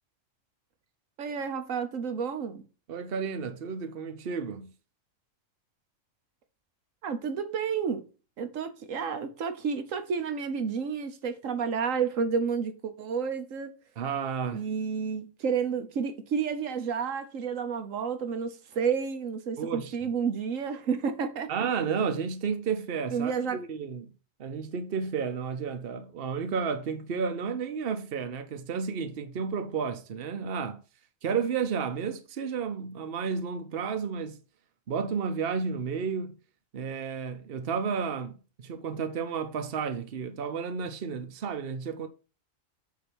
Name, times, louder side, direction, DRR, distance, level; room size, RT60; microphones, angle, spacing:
voice 1, 1.2-2.6 7.0-8.1 8.4-13.7 14.5-21.7 23.1-23.6, right 6 dB, 80° right, 1.4 m, -30 dB
voice 2, 2.9-4.7 14.0-14.6 19.6-20.1 21.5-24.1 24.4-30.8 31.2-34.4 34.9-36.3 36.7-42.1, right 6 dB, 50° right, 1.0 m, -32 dB
8.4 x 2.9 x 6.1 m
omnidirectional pair, 1.3 m